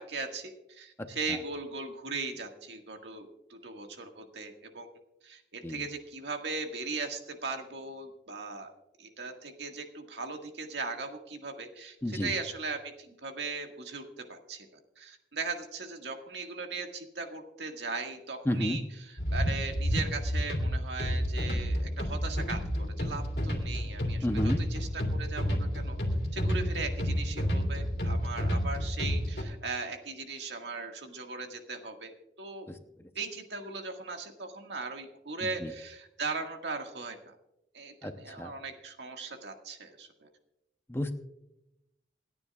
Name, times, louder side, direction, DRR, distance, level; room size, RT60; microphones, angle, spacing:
voice 1, 0.0-4.9 5.2-8.7 9.0-14.7 15.0-26.0 26.3-32.7 33.2-37.3 37.7-40.3, right 4 dB, 85° right, 4 dB, 1.8 m, -38 dB
voice 2, 12.0-12.3 18.5-18.8 24.2-24.6 35.6-35.7 38.0-38.1 38.4-38.5 40.9-41.1, left 1 dB, 15° left, 7 dB, 0.8 m, -30 dB
sound 1, 19.2-29.4, equal, 65° left, 2.6 m, -30 dB
28.0 x 9.5 x 2.4 m, 0.86 s
head